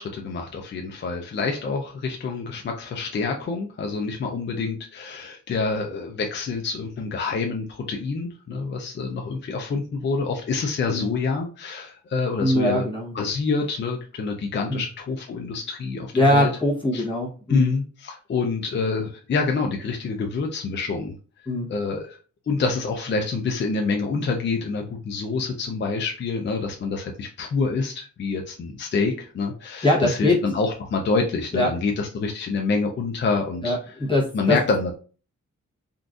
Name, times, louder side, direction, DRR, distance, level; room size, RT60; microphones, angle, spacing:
voice 1, 0.0-12.8 13.1-16.5 16.9-17.0 17.5-21.1 21.7-22.2 22.5-33.8 34.3-34.9, left 4 dB, 40° left, 1 dB, 0.4 m, -27 dB
voice 2, 12.4-13.1 14.7-14.8 16.1-17.7 21.5-21.7 29.8-30.4 31.5-31.7 33.6-34.6, left 1 dB, 15° left, -5 dB, 0.9 m, -22 dB
3.8 x 2.4 x 2.3 m, 0.38 s
wide cardioid pair, 160°, 31 cm